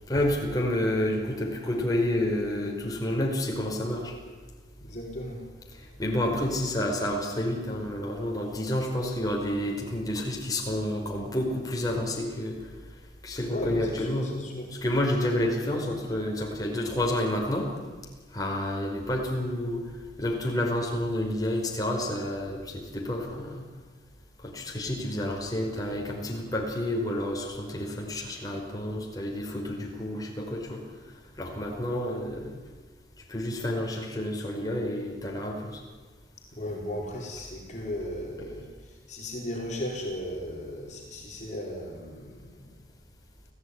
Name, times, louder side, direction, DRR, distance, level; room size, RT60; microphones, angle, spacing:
voice 1, 0.1-4.1 6.0-12.6 13.2-14.4 14.7-17.7 18.3-19.8 20.2-23.7 24.4-30.8 31.4-32.6 33.3-35.8, left 1 dB, 20° left, -1 dB, 5.2 m, -29 dB
voice 2, 4.8-5.4 13.5-14.7 36.5-42.8, left 1 dB, 40° left, -1 dB, 4.7 m, -36 dB
29.5 x 16.5 x 9.8 m, 1.4 s
head